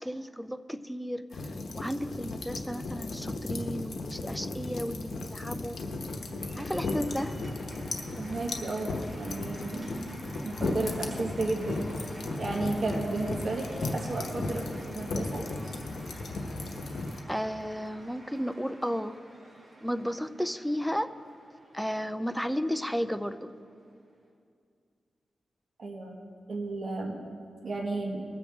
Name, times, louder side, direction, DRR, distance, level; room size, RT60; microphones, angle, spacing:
voice 1, 0.0-1.4 1.7-5.8 6.6-7.4 17.3-19.2 19.8-21.1 21.7-23.5, equal, ahead, 10 dB, 0.5 m, -33 dB
sound 1, 1.3-17.2, left 2 dB, 70° left, 1.1 m, -35 dB
Cheering / Applause, 5.0-24.3, right 1 dB, 35° right, 2.8 m, -51 dB
voice 2, 8.2-10.1 10.4-11.8 12.4-15.4 25.8-26.2 26.5-27.2 27.6-28.2, right 2 dB, 55° right, 0 dB, 1.6 m, -33 dB
20.5 x 7.7 x 3.6 m, 2.3 s
wide cardioid pair, 90°, 0 cm